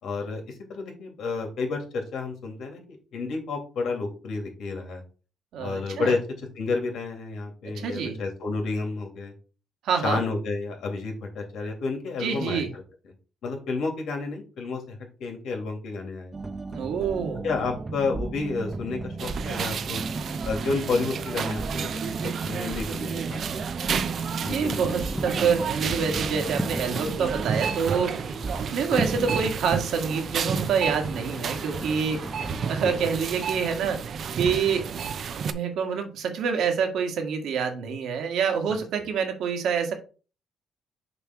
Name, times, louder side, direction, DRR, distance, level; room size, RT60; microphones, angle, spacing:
voice 1, 0.0-5.0 5.6-9.3 10.0-12.8 13.4-16.4 17.4-20.0 20.4-23.4 24.4-24.8 32.8-33.1, left 4 dB, 75° left, 2 dB, 2.3 m, -31 dB
voice 2, 5.5-6.1 7.7-8.2 9.8-10.2 12.2-12.7 16.7-17.4 24.3-28.2 28.7-32.3 32.7-34.0 34.4-35.0 35.4-39.9, right 6 dB, 80° right, 5 dB, 1.6 m, -27 dB
sound 1, 16.3-28.7 29.0-29.5, right 3 dB, 25° right, 1.0 m, -35 dB
sound 2, 19.2-35.5, right 7 dB, 60° right, 0.6 m, -31 dB
sound 3, 24.2-32.9, equal, 5° left, 0.7 m, -37 dB
6.8 x 3.2 x 5.8 m, 0.35 s
cardioid pair, 90°, 0 cm